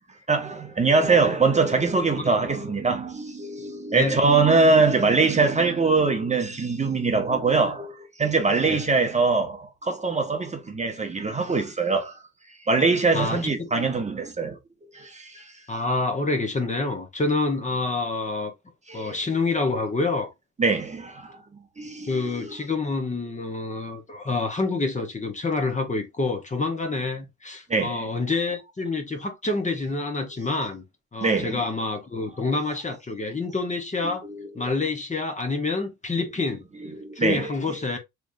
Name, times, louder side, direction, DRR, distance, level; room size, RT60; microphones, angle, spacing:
voice 1, 0.3-12.2 12.5-14.6 14.9-15.5 18.9-19.2 20.6-21.4 21.8-22.6 27.7-28.1 31.2-31.6 34.0-34.7 36.8-37.5, right 4 dB, 25° right, 0.9 m, -23 dB
voice 2, 13.1-13.5 15.7-18.5 18.9-20.3 22.1-30.8 31.1-34.2 34.5-36.6 37.1-38.0, left 3 dB, 25° left, 1.0 m, -27 dB
3.4 x 3.1 x 2.6 m
cardioid pair, 90°, 30 cm